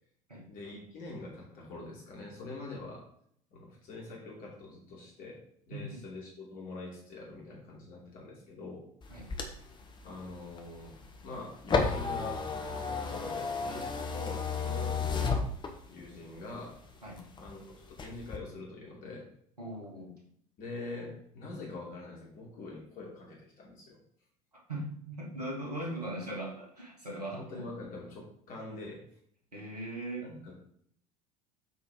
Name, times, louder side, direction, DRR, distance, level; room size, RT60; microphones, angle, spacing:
voice 1, 0.5-3.1 3.5-5.4 5.7-8.8 10.0-15.4 15.9-16.8 17.4-19.3 20.6-24.0 27.1-29.0 30.2-30.6, left 2 dB, 45° left, -2 dB, 3.2 m, -44 dB
sound 1, 9.0-16.1 16.5-17.5 17.9-18.4, left 4 dB, 25° left, 1.2 m, -33 dB
voice 2, 19.6-20.1 24.7-27.6 29.5-30.3, right 1 dB, 85° right, -1 dB, 2.0 m, -39 dB
8.4 x 4.7 x 3.7 m, 0.65 s
figure-of-eight pair, 70°, 20 cm